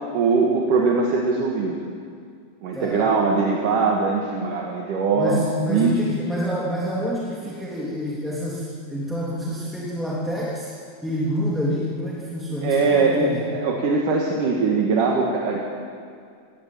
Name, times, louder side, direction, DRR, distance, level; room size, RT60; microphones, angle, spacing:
voice 1, 0.1-1.8 2.6-5.4 5.7-5.9 12.6-15.6, right 4 dB, 65° right, -1 dB, 3.2 m, -21 dB
voice 2, 5.1-10.7 11.0-13.4, equal, ahead, -7 dB, 2.6 m, -27 dB
20.5 x 18.0 x 8.7 m, 2.3 s
omnidirectional pair, 4.1 m